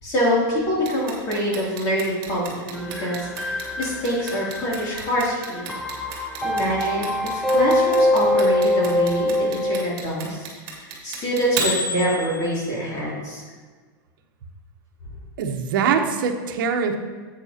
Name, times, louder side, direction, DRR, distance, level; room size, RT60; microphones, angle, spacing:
voice 1, 0.0-5.7 6.4-13.4, equal, 30° left, -5 dB, 2.7 m, -25 dB
Clock, 0.9-12.8, right 2 dB, 40° right, 2.2 m, -31 dB
sound 1, 2.8-9.9, left 1 dB, ahead, 0.5 m, -23 dB
voice 2, 15.4-17.0, right 6 dB, 70° right, 5 dB, 1.0 m, -23 dB
10.0 x 8.2 x 2.8 m, 1.5 s
supercardioid pair, 165°, 12 cm